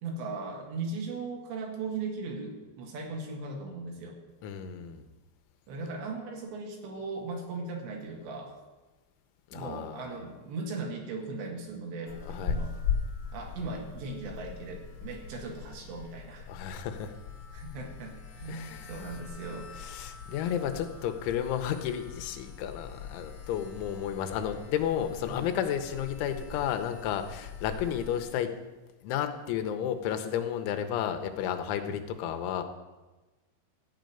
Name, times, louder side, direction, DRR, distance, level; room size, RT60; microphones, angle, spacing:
voice 1, 0.0-4.2 5.7-8.6 9.5-12.7 13.3-16.4 17.5-19.7 25.3-25.5 31.9-32.0, right 3 dB, 70° right, 1 dB, 3.9 m, -38 dB
voice 2, 4.4-5.0 9.5-10.1 12.3-12.6 16.5-17.1 18.5-18.9 19.8-28.5 29.0-32.6, left 9 dB, 85° left, 7 dB, 3.3 m, -32 dB
sound 1, 12.1-28.3, left 6 dB, 70° left, 2.1 m, -40 dB
14.0 x 5.3 x 9.1 m, 1.2 s
omnidirectional pair, 5.3 m